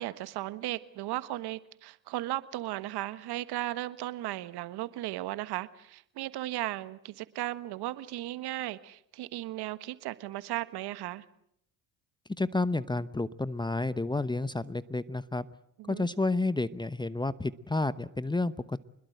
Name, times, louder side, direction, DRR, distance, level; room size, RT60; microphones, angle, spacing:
voice 1, 0.0-11.2 15.8-16.1, right 15 dB, 65° right, 14 dB, 1.5 m, -36 dB
voice 2, 12.4-15.5 15.9-18.8, left 2 dB, 10° left, 16 dB, 0.9 m, -30 dB
26.0 x 21.0 x 8.0 m, 0.72 s
hypercardioid pair, 70°, 42 cm